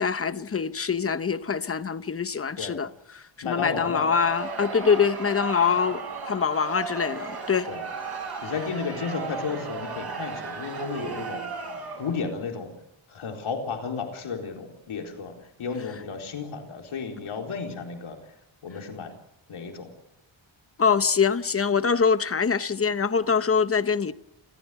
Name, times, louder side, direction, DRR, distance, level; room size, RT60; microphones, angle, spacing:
voice 1, 0.0-2.9 3.1-7.7 20.8-24.1, left 6 dB, 30° left, 0.9 m, -24 dB
voice 2, 3.4-4.1 7.7-7.8 8.4-11.6 12.0-12.7 13.1-15.3 15.6-18.2 18.6-19.1 19.5-19.9, left 5 dB, 85° left, 4.3 m, -33 dB
Crowd, 3.8-12.3, right 4 dB, 50° right, 6.0 m, -35 dB
30.0 x 14.5 x 8.3 m
wide cardioid pair, 155°, 48 cm